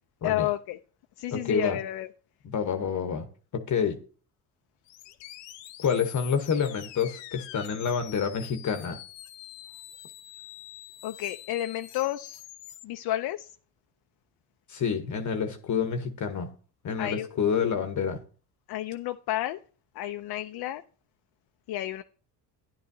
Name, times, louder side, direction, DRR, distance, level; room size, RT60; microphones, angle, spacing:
voice 1, 0.2-0.8 1.2-2.1 11.0-12.4 12.8-13.5 17.0-17.3 18.7-19.6 19.9-20.8 21.7-22.0, left 14 dB, 60° left, 0.5 m, -31 dB
voice 2, 1.3-1.8 2.4-3.3 3.5-4.0 5.8-9.0 14.7-16.5 16.8-18.2, left 6 dB, 45° left, 1.0 m, -28 dB
sound 1, 4.9-12.8, left 14 dB, 85° left, 0.8 m, -46 dB
10.5 x 10.0 x 2.7 m
cardioid pair, 85°, 43 cm